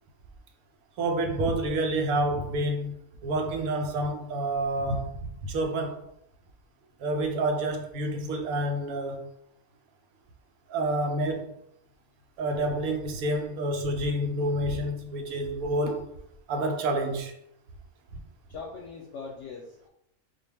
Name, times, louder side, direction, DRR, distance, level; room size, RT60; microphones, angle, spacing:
voice 1, 1.0-3.0 3.2-6.0 7.0-9.3 10.7-11.5 12.4-16.1 16.5-17.3 18.1-18.2, right 1 dB, 85° right, 1.1 m, -28 dB
voice 2, 18.5-19.9, left 4 dB, 65° left, 0.8 m, -41 dB
4.0 x 2.3 x 3.3 m
omnidirectional pair, 1.5 m